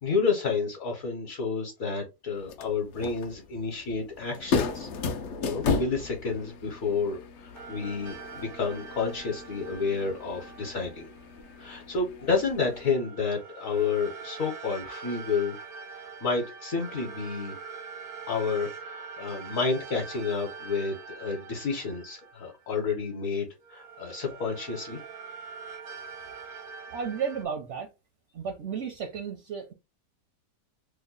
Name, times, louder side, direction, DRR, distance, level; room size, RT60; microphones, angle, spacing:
voice 1, 0.0-4.9 5.4-11.1 11.6-15.6 15.9-17.6 18.3-25.0, left 4 dB, 60° left, 1.2 m, -30 dB
sound 1, 2.4-12.9, left 4 dB, 90° left, 0.6 m, -35 dB
sound 2, 7.5-11.7 12.6-23.1 23.6-27.4, right 5 dB, 85° right, 1.4 m, -44 dB
voice 2, 26.9-27.9 28.3-29.7, right 6 dB, 70° right, 0.7 m, -33 dB
3.2 x 2.1 x 3.7 m
omnidirectional pair, 1.8 m